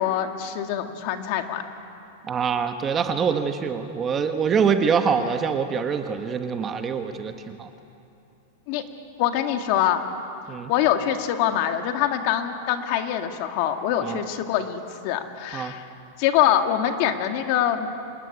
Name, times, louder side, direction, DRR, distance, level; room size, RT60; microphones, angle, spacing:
voice 1, 0.0-1.6 8.7-8.8 9.2-10.0 10.7-15.8 16.2-17.9, left 10 dB, 40° left, 6 dB, 1.8 m, -24 dB
voice 2, 2.3-7.7 10.5-10.7 14.0-14.2 15.5-15.8, right 6 dB, 15° right, 7 dB, 1.0 m, -25 dB
27.0 x 19.5 x 9.8 m, 2.7 s
supercardioid pair, 170°, 0 cm